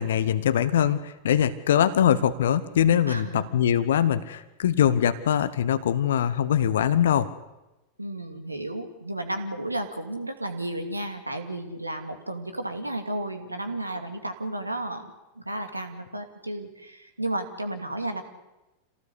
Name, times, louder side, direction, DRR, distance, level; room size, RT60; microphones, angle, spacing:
voice 1, 0.0-7.3, left 9 dB, 60° left, 13 dB, 1.0 m, -22 dB
voice 2, 3.1-3.5 8.0-15.1 15.4-18.2, right 1 dB, 85° right, 7 dB, 2.5 m, -33 dB
27.0 x 18.0 x 8.4 m, 1.0 s
figure-of-eight pair, 90°, 0 cm